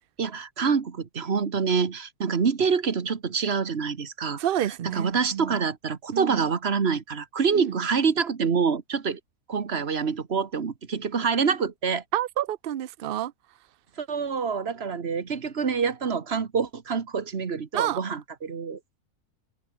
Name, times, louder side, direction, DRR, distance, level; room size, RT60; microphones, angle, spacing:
voice 1, 0.0-4.4 4.9-9.2 9.5-12.0 14.0-19.0, right 5 dB, 40° right, 1.6 m, -26 dB
voice 2, 4.4-5.6 6.1-6.4 7.5-7.8 12.1-13.3 17.7-18.0, right 12 dB, 75° right, 0.5 m, -29 dB
omnidirectional pair, 1.7 m